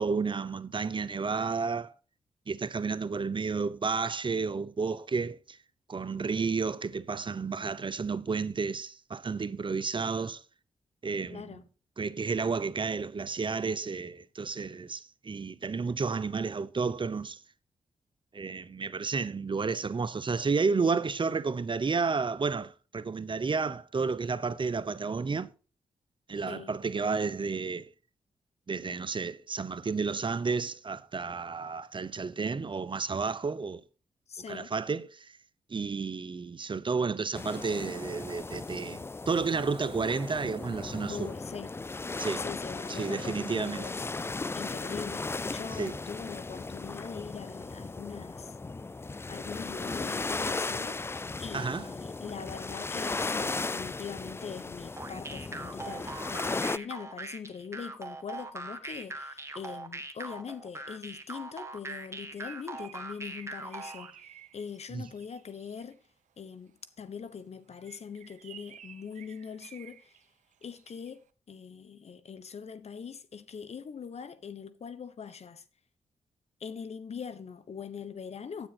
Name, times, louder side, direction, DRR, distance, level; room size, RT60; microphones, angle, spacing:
voice 1, 0.0-1.9 2.5-5.6 5.9-10.4 11.0-11.4 12.0-17.4 18.3-25.5 26.3-27.9 28.7-33.8 34.5-35.3 35.7-41.3 42.2-42.4 42.9-43.8 45.8-45.9 51.5-51.9 64.9-65.0, right 4 dB, 40° right, 0.7 m, -31 dB
voice 2, 11.3-11.6 26.5-26.7 34.3-34.7 41.1-41.7 42.4-44.1 44.5-48.6 49.3-66.0 66.4-70.2 70.6-75.6 76.6-78.7, left 6 dB, 60° left, 1.1 m, -42 dB
sound 1, 37.3-56.8, left 3 dB, 20° left, 0.4 m, -36 dB
sound 2, 55.0-64.1, right 2 dB, 20° right, 1.6 m, -41 dB
Bird, 62.0-66.1 67.7-71.2, right 10 dB, 85° right, 0.8 m, -54 dB
10.0 x 8.6 x 4.2 m
supercardioid pair, 50°, 12 cm